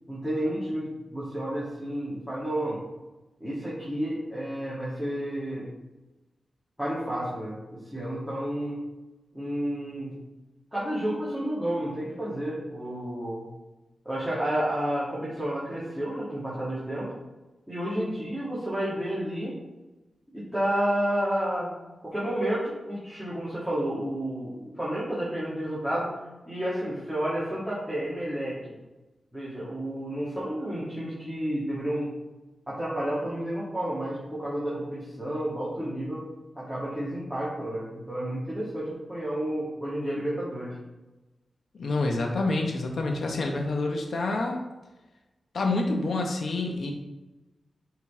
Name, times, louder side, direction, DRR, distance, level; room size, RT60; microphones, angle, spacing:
voice 1, 0.1-2.8 3.4-5.7 6.8-8.8 9.3-10.1 10.7-13.4 14.1-17.1 17.7-19.6 20.3-21.7 22.0-26.1 26.5-28.6 29.3-32.1 32.7-36.2 36.6-40.7, right 1 dB, 5° right, -9 dB, 2.0 m, -31 dB
voice 2, 41.8-44.6 45.5-46.9, left 2 dB, 70° left, 1 dB, 0.9 m, -27 dB
9.0 x 3.8 x 3.7 m, 1.1 s
wide cardioid pair, 130°, 0 cm